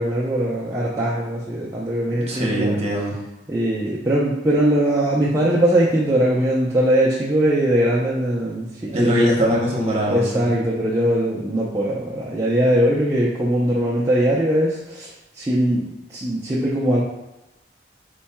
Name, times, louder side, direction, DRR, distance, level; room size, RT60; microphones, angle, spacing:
voice 1, 0.0-2.8 3.5-9.3 10.1-17.0, right 1 dB, 20° right, -7 dB, 0.5 m, -21 dB
voice 2, 2.1-3.2 8.9-10.6, equal, 35° right, -3 dB, 0.9 m, -22 dB
4.5 x 4.1 x 2.2 m, 0.97 s
head